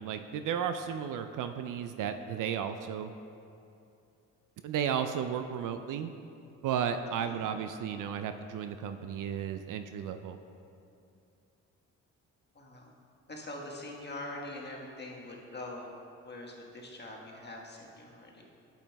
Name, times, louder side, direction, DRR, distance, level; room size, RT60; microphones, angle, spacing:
voice 1, 0.0-3.1 4.6-6.1 6.6-10.4, right 8 dB, 55° right, 8 dB, 0.4 m, -34 dB
voice 2, 7.2-7.5 12.5-12.9 13.3-15.9 16.2-18.3, left 1 dB, 25° left, -2 dB, 1.4 m, -43 dB
8.4 x 8.2 x 2.3 m, 2.6 s
hypercardioid pair, 50°, 37 cm